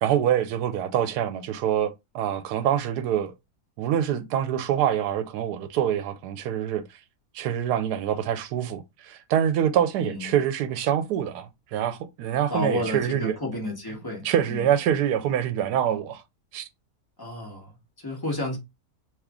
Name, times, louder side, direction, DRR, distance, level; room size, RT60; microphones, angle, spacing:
voice 1, 0.0-3.3 3.8-6.8 7.3-13.3 14.2-16.2 16.5-16.7, right 10 dB, 80° right, 1.1 m, -25 dB
voice 2, 10.0-10.4 12.5-14.6 17.2-18.6, left 1 dB, 15° left, 1.1 m, -32 dB
3.0 x 2.4 x 3.5 m
omnidirectional pair, 1.7 m